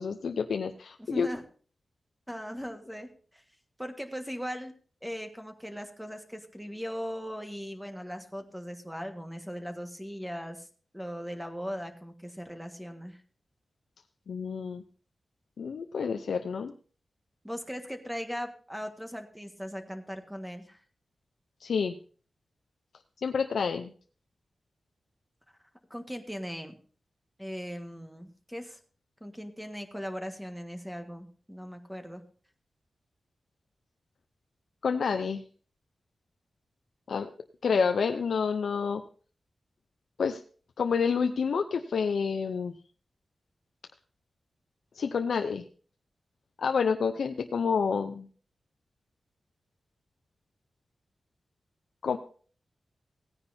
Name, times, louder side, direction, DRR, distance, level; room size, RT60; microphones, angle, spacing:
voice 1, 0.0-1.3 14.3-14.8 15.6-16.7 21.6-22.0 23.2-23.9 34.8-35.4 37.1-37.3 37.6-39.0 40.2-40.4 40.8-42.7 44.9-45.6 46.6-48.3 52.0-52.2, left 5 dB, 90° left, 6 dB, 0.6 m, -28 dB
voice 2, 1.0-1.4 2.3-3.4 3.8-4.7 5.0-10.7 10.9-13.2 17.4-20.8 25.9-26.7 27.4-28.8 29.2-32.2, equal, 5° right, 5 dB, 1.6 m, -39 dB
17.0 x 9.7 x 2.7 m, 0.41 s
wide cardioid pair, 100°, 0 cm